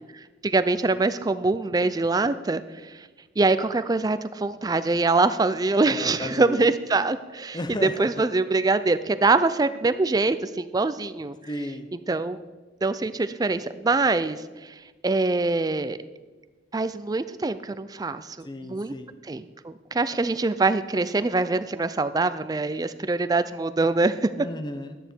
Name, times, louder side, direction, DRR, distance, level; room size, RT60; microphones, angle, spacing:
voice 1, 0.4-3.1 3.4-7.6 8.0-11.4 12.1-12.4 12.8-14.7 15.0-16.0 16.7-18.9 19.2-24.3, right 3 dB, 20° right, 12 dB, 0.4 m, -24 dB
voice 2, 5.9-6.7 7.5-8.2 11.5-11.9 18.4-19.1 24.4-25.0, left 1 dB, 25° left, 8 dB, 0.7 m, -34 dB
11.0 x 9.9 x 4.4 m, 1.2 s
head